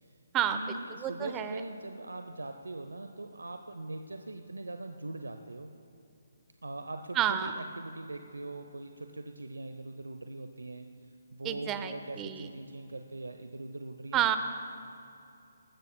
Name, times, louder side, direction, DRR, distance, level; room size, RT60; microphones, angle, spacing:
voice 1, 0.5-5.7 6.6-10.9 11.3-14.4, right 2 dB, 90° right, 6 dB, 0.7 m, -41 dB
voice 2, 1.0-1.5 7.2-7.5 11.4-12.4 14.1-14.4, right 10 dB, 20° right, 9 dB, 0.7 m, -29 dB
19.5 x 15.5 x 2.2 m, 2.7 s
figure-of-eight pair, 145°, 0 cm